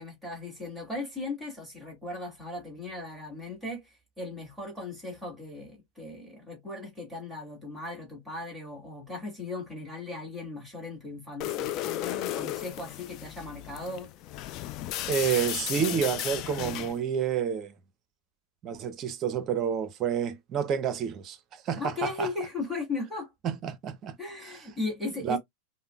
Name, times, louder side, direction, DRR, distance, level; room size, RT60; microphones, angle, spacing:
voice 1, 0.0-14.1 21.8-23.3 24.2-25.4, left 2 dB, 5° right, 1.9 m, -37 dB
sound 1, 11.4-17.0, left 13 dB, 45° left, 0.3 m, -34 dB
voice 2, 15.1-17.7 18.6-22.3 23.4-24.2 25.2-25.4, right 8 dB, 35° right, 0.6 m, -29 dB
5.4 x 2.1 x 2.3 m
hypercardioid pair, 120°, 0 cm